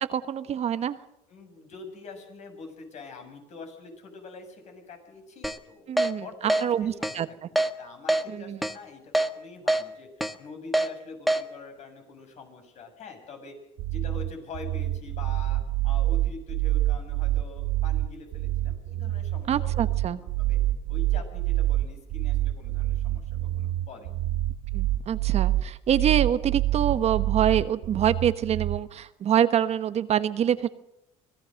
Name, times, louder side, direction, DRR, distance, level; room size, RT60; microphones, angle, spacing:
voice 1, 0.1-1.0 5.9-6.3 6.6-7.3 8.3-8.6 19.5-20.2 24.7-30.7, right 9 dB, 45° right, 12 dB, 1.2 m, -25 dB
voice 2, 1.3-7.4 7.8-13.6 13.9-20.6 20.9-24.2, left 4 dB, 50° left, 5 dB, 7.0 m, -45 dB
Keyboard (musical), 5.4-5.6 6.0-6.1 6.5-6.6 7.0-7.2 7.6-7.7 8.1-8.2 8.6-8.7 9.1-9.3 9.7-9.8 10.2-10.3 10.7-10.9 11.3-11.4, right 1 dB, ahead, 1.4 m, -23 dB
sound 1, 13.8-28.8, right 15 dB, 75° right, 1.4 m, -27 dB
25.5 x 18.5 x 6.5 m, 0.83 s
supercardioid pair, 100°, 15 cm